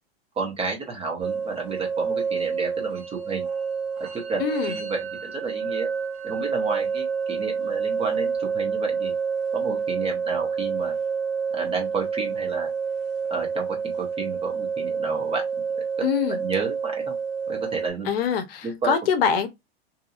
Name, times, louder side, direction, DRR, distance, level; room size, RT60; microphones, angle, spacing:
voice 1, 0.3-3.5 4.1-5.9 6.2-9.1 9.5-10.9 11.5-12.7 13.3-15.4 15.7-15.8 16.3-17.1 17.5-18.1 18.6-19.0, right 4 dB, 15° right, 0.9 m, -31 dB
sound 1, 1.2-17.9, right 6 dB, 75° right, 0.9 m, -28 dB
voice 2, 4.4-4.8 16.0-16.4 18.0-19.5, left 7 dB, 65° left, 0.8 m, -24 dB
2.8 x 2.6 x 2.4 m
hypercardioid pair, 135°, 32 cm